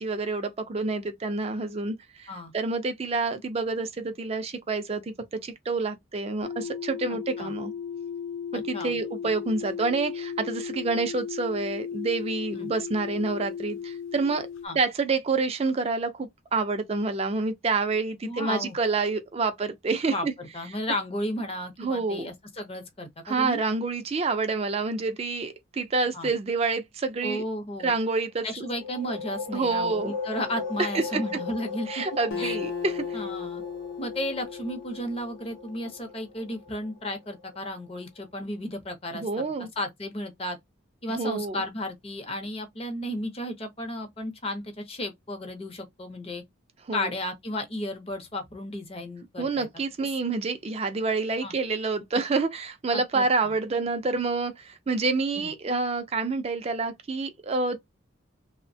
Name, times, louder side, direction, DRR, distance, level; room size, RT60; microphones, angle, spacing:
voice 1, 0.0-5.1 5.4-7.7 8.5-14.5 14.7-20.3 21.8-22.3 23.3-27.4 27.8-28.4 29.5-30.1 30.9-31.2 31.9-33.0 39.1-39.7 41.2-41.6 46.9-47.1 49.4-57.8, right 3 dB, 30° right, 0.4 m, -28 dB
sound 1, 6.4-14.7, left 7 dB, 65° left, 0.3 m, -35 dB
voice 2, 7.1-7.5 8.5-9.0 12.5-12.7 14.6-14.8 18.2-18.8 20.1-23.6 26.1-26.3 27.2-27.9 28.4-32.0 32.3-32.6 33.1-33.6 34.0-39.4 39.8-40.6 41.0-46.4 46.9-49.7 51.4-51.5 52.9-53.5 55.4-55.5, left 1 dB, 30° left, 0.6 m, -34 dB
sound 2, 28.5-38.0, left 4 dB, 45° left, 1.0 m, -38 dB
Acoustic guitar, 32.3-35.9, left 6 dB, 85° left, 0.7 m, -36 dB
3.0 x 2.1 x 2.6 m
head